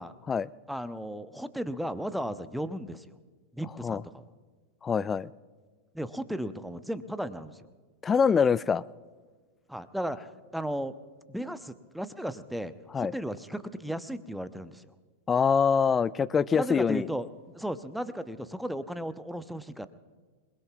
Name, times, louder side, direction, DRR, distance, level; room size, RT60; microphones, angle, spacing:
voice 1, 0.7-3.2 3.5-4.2 5.9-7.6 9.7-10.9 11.3-14.9 16.5-17.3 17.5-19.9, equal, ahead, 13 dB, 0.8 m, -35 dB
voice 2, 4.8-5.3 8.0-8.8 12.9-13.1 15.3-17.1, left 6 dB, 20° left, 20 dB, 0.4 m, -24 dB
27.5 x 20.5 x 2.4 m, 1.4 s
figure-of-eight pair, 90°, 0 cm